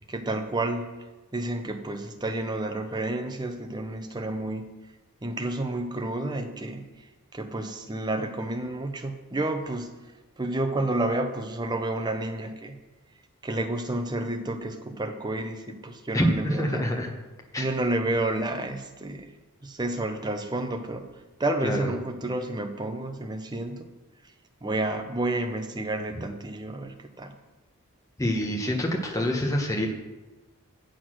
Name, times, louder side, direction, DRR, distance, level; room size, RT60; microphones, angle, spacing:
voice 1, 0.1-0.9 1.3-4.7 5.2-6.8 7.3-9.9 10.4-12.7 13.4-16.8 17.6-19.3 19.6-21.1 21.4-23.9 24.6-27.3, right 2 dB, 20° right, 6 dB, 0.7 m, -30 dB
voice 2, 16.1-17.1 17.5-17.6 21.6-21.9 28.2-29.9, equal, 15° left, 0 dB, 1.0 m, -26 dB
7.9 x 6.4 x 6.2 m, 1.1 s
head